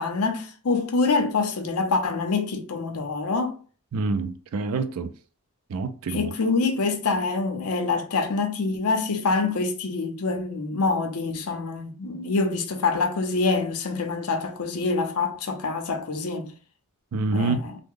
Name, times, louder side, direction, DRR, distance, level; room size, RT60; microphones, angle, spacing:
voice 1, 0.0-3.6 6.1-16.5 17.3-17.8, left 3 dB, 85° left, 0.6 m, -25 dB
voice 2, 3.9-5.1 5.7-6.3 17.1-17.6, right 3 dB, 75° right, 0.4 m, -27 dB
3.5 x 2.1 x 3.6 m
head